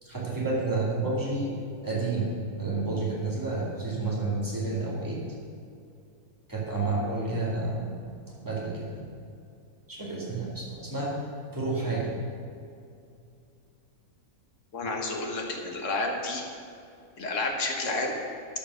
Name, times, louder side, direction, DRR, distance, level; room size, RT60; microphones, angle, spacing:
voice 1, 0.0-1.6 1.8-5.2 6.5-7.9 8.4-9.0 9.9-11.2 11.5-12.1, right 3 dB, 10° right, -6 dB, 2.3 m, -30 dB
voice 2, 14.7-16.4 17.2-18.1, left 2 dB, 55° left, 2 dB, 1.6 m, -30 dB
13.0 x 5.3 x 6.3 m, 2.5 s
omnidirectional pair, 1.6 m